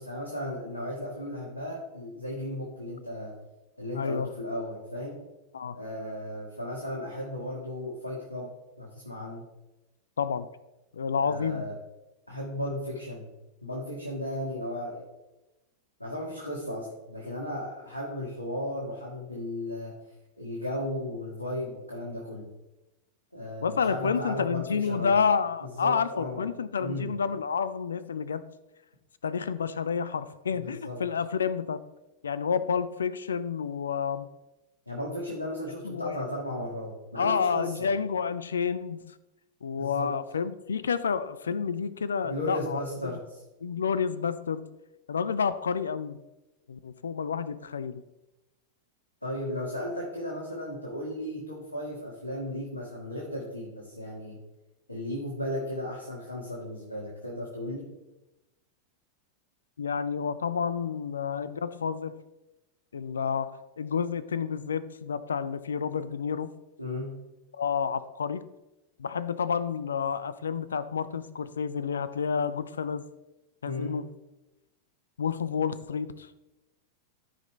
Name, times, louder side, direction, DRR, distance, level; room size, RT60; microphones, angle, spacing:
voice 1, 0.0-3.3 3.8-5.2 5.7-9.5 11.2-11.8 12.3-13.3 13.6-15.1 16.0-20.0 20.4-22.5 23.3-25.2 25.7-26.5 26.8-27.1 30.5-31.0 34.9-37.9 39.8-40.1 42.2-43.4 49.2-54.4 54.9-57.9 66.8-67.2 73.6-74.0, left 1 dB, 85° left, -3 dB, 1.6 m, -35 dB
voice 2, 4.0-4.3 5.5-5.8 10.2-10.5 10.9-11.6 23.6-28.4 29.2-31.8 32.2-34.3 35.8-36.2 37.2-39.0 39.6-43.1 43.6-44.6 45.1-46.2 46.7-48.0 59.8-62.2 62.9-66.5 67.6-68.4 69.0-73.1 73.6-74.1 75.2-76.3, left 6 dB, 70° left, 15 dB, 0.5 m, -29 dB
14.0 x 5.2 x 3.2 m, 1.0 s
figure-of-eight pair, 90°, 0 cm